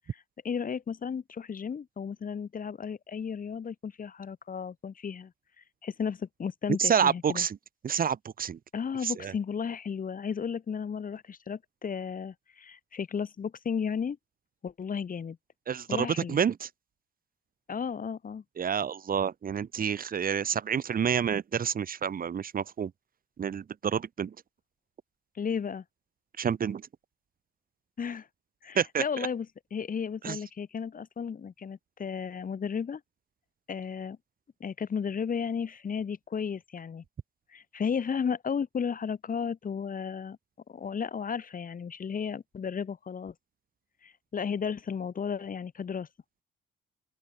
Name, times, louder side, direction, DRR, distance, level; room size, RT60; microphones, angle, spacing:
voice 1, 0.1-5.3 5.6-7.4 8.7-14.2 14.6-15.4 15.9-16.4 17.7-18.4 25.3-25.8 28.0-28.3 28.6-29.5 29.7-33.0 33.7-34.2 34.6-37.0 37.5-40.4 40.7-43.3 44.0-46.1, left 6 dB, 45° left, 3.3 m, -34 dB
voice 2, 6.8-7.6 7.8-8.6 9.0-9.3 15.7-16.7 18.6-22.9 23.4-24.3 26.4-26.8 28.7-29.3 30.2-30.4, right 7 dB, 45° right, 1.4 m, -28 dB
open air
cardioid pair, 90°, 20 cm